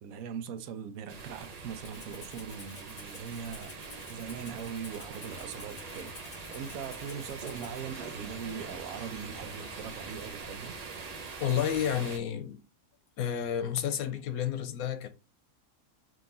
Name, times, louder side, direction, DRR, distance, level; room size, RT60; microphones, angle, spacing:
voice 1, 0.0-3.8 4.1-6.2 6.5-10.8, right 7 dB, 80° right, 1.0 m, -41 dB
sound 1, 1.1-12.2, right 4 dB, 50° right, 0.4 m, -43 dB
Rattle (instrument), 1.8-7.8, left 4 dB, 65° left, 1.4 m, -51 dB
sound 2, 5.3-10.3, left 2 dB, 45° left, 1.3 m, -53 dB
voice 2, 11.4-12.6 13.2-15.1, left 9 dB, 85° left, 1.1 m, -30 dB
3.8 x 2.8 x 3.8 m
omnidirectional pair, 1.5 m